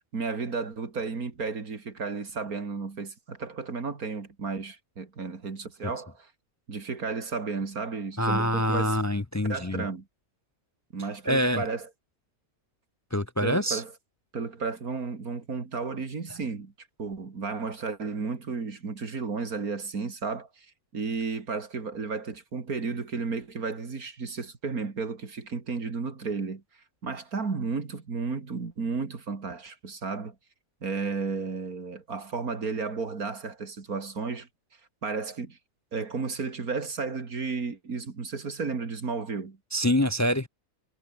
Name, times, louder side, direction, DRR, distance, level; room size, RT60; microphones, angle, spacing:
voice 1, 0.1-6.3 6.7-9.0 9.5-10.1 10.9-11.9 13.4-13.9 14.3-20.7 20.9-26.6 27.0-30.3 30.8-34.5 35.0-35.6 35.9-39.6, right 4 dB, 80° right, 3.0 m, -33 dB
voice 2, 8.2-9.9 11.3-11.6 13.1-13.8 39.7-40.5, left 1 dB, 25° left, 0.3 m, -25 dB
omnidirectional pair, 1.5 m